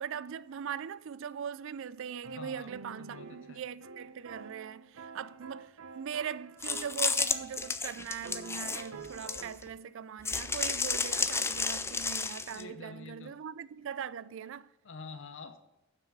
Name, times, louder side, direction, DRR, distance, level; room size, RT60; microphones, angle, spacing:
voice 1, 0.0-14.7, right 7 dB, 65° right, 0.4 m, -40 dB
sound 1, 2.2-7.9 8.2-9.5, right 4 dB, 85° right, 0.7 m, -48 dB
voice 2, 2.4-2.7 3.0-3.6 12.5-13.4 14.8-15.6, left 4 dB, 65° left, 0.7 m, -47 dB
sound 2, 6.6-9.7 10.2-12.6, left 4 dB, 15° left, 0.5 m, -32 dB
7.3 x 6.2 x 7.4 m
head